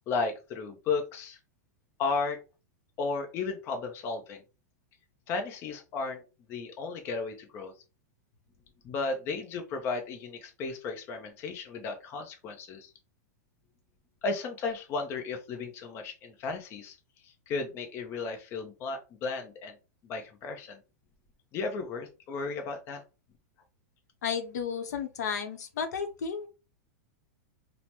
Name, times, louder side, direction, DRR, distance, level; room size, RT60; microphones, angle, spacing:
voice 1, 0.1-1.4 2.0-2.4 3.0-4.4 5.3-6.2 6.5-7.7 8.8-12.9 14.2-17.0 17.2-19.8 20.0-20.8 21.5-23.0, left 4 dB, 25° left, 0.5 m, -34 dB
voice 2, 24.2-26.5, left 6 dB, 85° left, 0.7 m, -33 dB
3.2 x 2.0 x 2.8 m
supercardioid pair, 155°, 9 cm